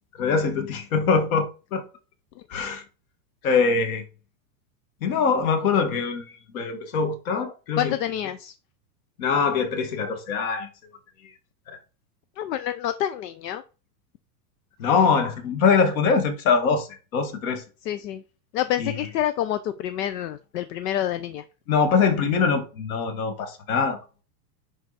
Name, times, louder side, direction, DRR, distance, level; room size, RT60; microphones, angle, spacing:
voice 1, 0.2-1.9 2.5-2.8 3.4-4.0 5.0-8.0 9.2-10.7 11.7-11.8 14.8-17.6 18.8-19.0 21.7-24.0, left 5 dB, 60° left, 1.9 m, -23 dB
voice 2, 7.8-8.5 12.4-13.6 17.8-18.2 18.5-21.4, left 11 dB, 75° left, 0.8 m, -28 dB
10.5 x 3.9 x 4.2 m
supercardioid pair, 165°, 48 cm